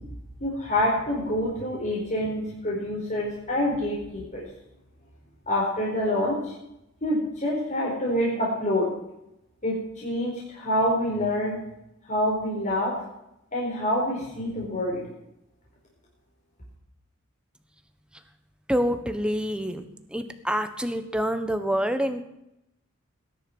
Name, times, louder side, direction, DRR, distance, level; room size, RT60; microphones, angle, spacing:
voice 1, 0.4-4.4 5.5-6.4 7.0-8.9 9.6-11.6 12.1-12.9 13.5-15.0, left 1 dB, 40° left, -4 dB, 4.6 m, -26 dB
voice 2, 18.7-19.8 20.1-22.2, equal, 5° right, 8 dB, 1.3 m, -26 dB
19.0 x 11.0 x 6.2 m, 0.85 s
head